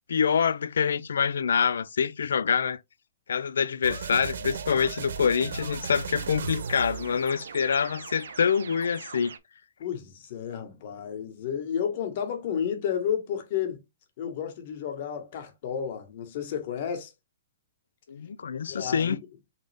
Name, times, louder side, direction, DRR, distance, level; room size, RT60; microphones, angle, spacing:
voice 1, 0.1-2.8 3.3-9.4 18.1-19.2, left 6 dB, 90° left, 0.3 m, -26 dB
sound 1, 3.8-9.4, right 6 dB, 80° right, 0.6 m, -37 dB
voice 2, 9.8-13.8 14.2-17.1 18.7-19.2, left 8 dB, 50° left, 1.4 m, -31 dB
3.8 x 3.7 x 3.4 m
hypercardioid pair, 150°, 0 cm